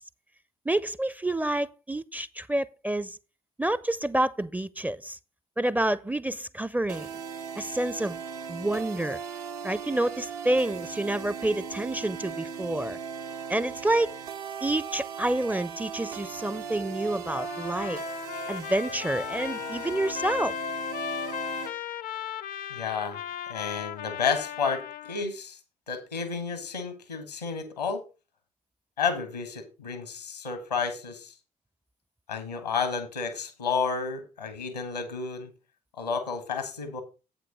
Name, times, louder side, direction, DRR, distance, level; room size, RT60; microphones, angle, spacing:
voice 1, 0.7-3.2 3.6-5.2 5.6-7.1 7.6-8.2 8.5-9.2 9.6-13.0 13.5-14.1 14.6-18.0 18.5-20.6, right 1 dB, 10° right, 0.4 m, -28 dB
sound 1, 6.9-21.7, right 6 dB, 75° right, 0.7 m, -38 dB
Trumpet, 17.2-25.3, left 10 dB, 45° left, 0.5 m, -36 dB
voice 2, 22.7-23.2 23.5-25.6 25.9-28.0 29.0-31.3 32.3-35.5 36.0-37.0, left 5 dB, 85° left, 1.2 m, -31 dB
7.9 x 6.2 x 5.0 m
figure-of-eight pair, 40°, 20 cm